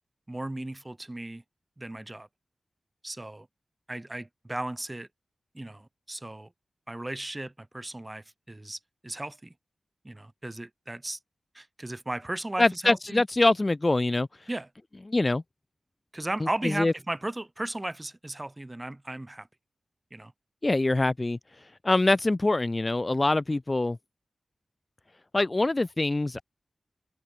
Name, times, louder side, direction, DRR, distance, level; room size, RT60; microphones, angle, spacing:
voice 1, 0.3-1.4 1.8-2.3 3.0-3.5 3.9-5.1 5.5-6.5 6.9-9.5 10.0-11.2 11.5-13.2 14.5-14.7 16.1-19.5 20.1-20.3, right 1 dB, 20° right, 3.7 m, -36 dB
voice 2, 12.6-14.3 15.1-15.4 16.6-16.9 20.6-21.4 21.8-24.0 25.3-26.4, left 2 dB, 30° left, 2.4 m, -24 dB
wide cardioid pair, 75°, 0 cm